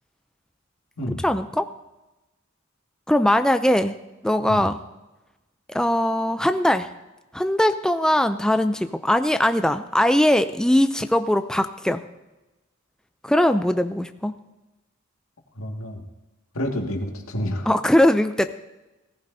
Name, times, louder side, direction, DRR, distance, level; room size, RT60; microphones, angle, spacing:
voice 1, 1.1-1.7 3.1-3.9 4.2-4.8 5.7-6.9 7.3-12.0 13.2-14.3 17.7-18.5, left 1 dB, 5° left, 9 dB, 0.4 m, -20 dB
voice 2, 15.6-16.0 16.5-17.7, equal, 80° left, 1 dB, 1.9 m, -29 dB
17.5 x 15.0 x 2.7 m, 1.1 s
head